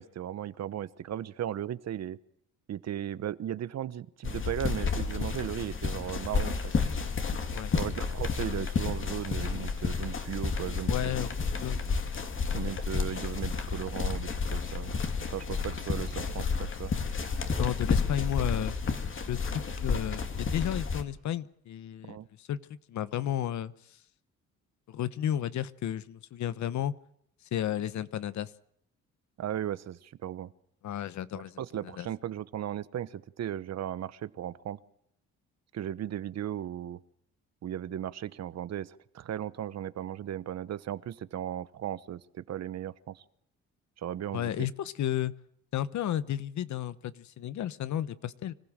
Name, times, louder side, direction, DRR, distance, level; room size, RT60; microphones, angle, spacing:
voice 1, 0.0-2.2 2.7-6.7 7.7-11.3 12.5-15.0 15.3-16.9 22.0-22.3 29.4-30.5 31.3-34.8 35.7-37.0 37.6-43.2 44.0-44.7, right 10 dB, 60° right, 16 dB, 1.0 m, -36 dB
sound 1, 4.2-21.0, left 5 dB, 40° left, 2.6 m, -31 dB
voice 2, 10.9-11.9 17.5-18.8 19.3-22.6 22.9-23.7 24.9-26.9 27.5-28.5 30.8-31.6 32.0-32.1 44.3-45.3 45.7-48.5, left 11 dB, 70° left, 16 dB, 1.1 m, -33 dB
25.5 x 15.5 x 7.5 m, 0.73 s
cardioid pair, 90°, 30 cm